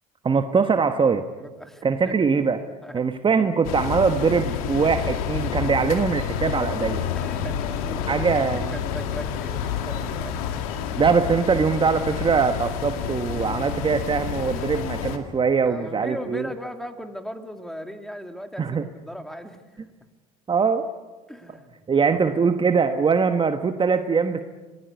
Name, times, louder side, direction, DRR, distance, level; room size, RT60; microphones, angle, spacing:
voice 1, 0.2-1.2 1.8-2.6 2.9-7.0 8.1-8.7 11.0-16.5 18.6-18.9 20.5-20.9 21.9-24.4, right 5 dB, 25° right, 8 dB, 1.3 m, -22 dB
voice 2, 1.4-2.1 2.8-3.0 3.4-3.7 7.2-8.3 8.7-10.4 15.6-19.6 21.3-21.8 22.1-22.2, equal, ahead, 7 dB, 2.6 m, -38 dB
sound 1, 3.6-15.2, left 8 dB, 75° left, 2.3 m, -29 dB
27.0 x 19.5 x 8.2 m, 1.3 s
hypercardioid pair, 70°, 19 cm